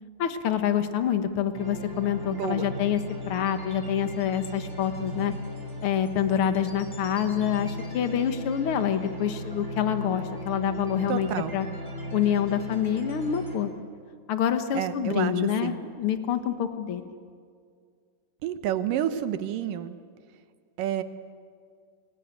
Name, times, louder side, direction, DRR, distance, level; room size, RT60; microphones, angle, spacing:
voice 1, 0.2-3.0 3.3-5.3 5.8-11.7 12.1-13.7 14.3-17.1, left 9 dB, 55° left, 8 dB, 1.6 m, -27 dB
sound 1, 1.5-13.6, left 1 dB, 5° right, 5.0 m, -37 dB
voice 2, 2.2-2.7 11.1-11.5 14.7-15.8 18.4-20.0 20.8-21.0, right 11 dB, 75° right, 11 dB, 2.6 m, -29 dB
28.0 x 21.5 x 9.2 m, 2.1 s
omnidirectional pair, 4.1 m